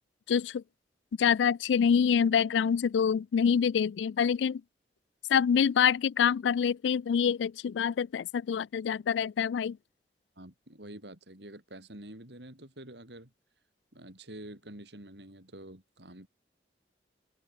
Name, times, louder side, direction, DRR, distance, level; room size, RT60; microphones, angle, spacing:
voice 1, 0.3-0.6 1.2-4.6 5.3-9.8, left 7 dB, 90° left, 0.3 m, -26 dB
voice 2, 10.4-13.3 13.9-16.3, right 1 dB, 70° right, 5.1 m, -47 dB
head